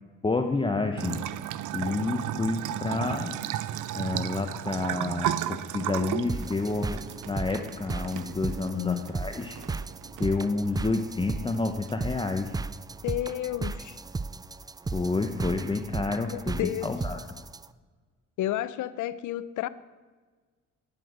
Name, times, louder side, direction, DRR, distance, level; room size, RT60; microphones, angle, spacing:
voice 1, 0.2-1.2 1.7-3.3 3.9-9.6 10.2-12.6 14.9-17.2, left 3 dB, 15° left, 0.8 m, -29 dB
Bathtub (filling or washing) / Trickle dribble, 1.0-11.9, right 12 dB, 85° right, 0.6 m, -35 dB
sound 1, 6.3-17.7, right 3 dB, 15° right, 0.3 m, -36 dB
voice 2, 8.7-9.1 13.0-14.0 16.3-16.9 18.4-19.7, left 13 dB, 75° left, 0.7 m, -31 dB
10.0 x 9.0 x 7.9 m
cardioid pair, 90°, 30 cm